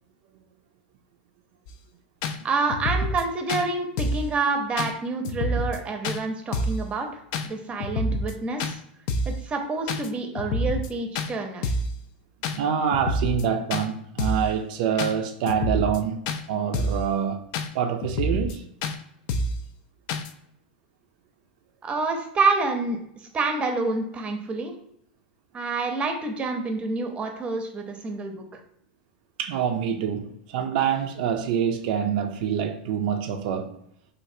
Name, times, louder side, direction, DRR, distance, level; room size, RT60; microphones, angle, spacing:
sound 1, 1.7-1.8 2.2-2.4 2.7-3.2 3.5-3.6 4.0-4.3 4.8-4.9 5.2-5.8 6.0-6.2 6.5-6.8 7.3-7.5 7.8-8.3 8.6-8.7 9.1-9.4 9.9-10.1 10.3-10.9 11.1-11.3 11.6-11.9 12.4-12.6 12.9-13.4 13.7-13.8 14.2-14.5 15.0-15.1 15.5-16.0 16.3-16.4 16.7-17.0 17.5-17.7 18.0-18.5 18.8-19.0 19.3-19.6 20.1-20.3, left 1 dB, 55° left, 0.3 m, -27 dB
voice 1, 2.4-8.8 9.3-11.7 21.8-24.7 25.5-28.6, right 3 dB, 25° right, 0.6 m, -28 dB
voice 2, 12.5-17.5 17.7-18.7 29.4-33.8, right 8 dB, 65° right, 0.4 m, -26 dB
3.1 x 2.3 x 2.6 m
hypercardioid pair, 115°, 5 cm